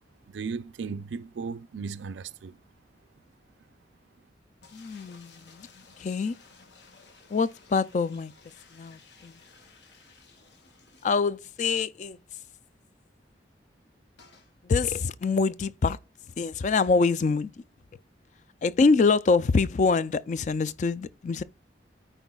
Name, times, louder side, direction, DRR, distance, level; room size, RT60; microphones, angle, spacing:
voice 1, 0.3-2.6, right 5 dB, 90° right, 0.4 m, -36 dB
sound 1, 4.6-11.8 12.1-12.2 12.4-12.5 14.2-14.5, left 4 dB, 75° left, 1.3 m, -56 dB
voice 2, 4.7-5.7 6.0-6.3 7.3-8.3 8.7-9.4 11.0-12.2 14.6-16.0 16.4-17.5 18.6-21.4, left 4 dB, 40° left, 0.3 m, -25 dB
13.5 x 4.4 x 2.3 m
head